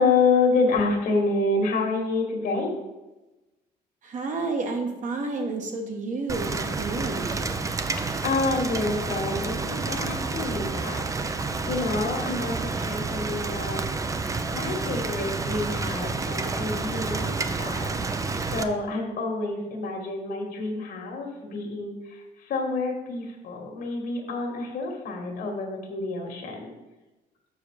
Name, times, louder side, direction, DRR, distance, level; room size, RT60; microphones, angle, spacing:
voice 1, 0.0-2.7 8.0-11.1 11.6-13.8 14.5-18.1 18.5-26.7, left 3 dB, 65° left, 2 dB, 1.8 m, -28 dB
voice 2, 4.0-7.3, right 3 dB, 50° right, 3 dB, 1.3 m, -30 dB
Rain, 6.3-18.6, right 4 dB, 20° right, 0.5 m, -29 dB
7.0 x 5.2 x 4.9 m, 1.1 s
cardioid pair, 110°, 17 cm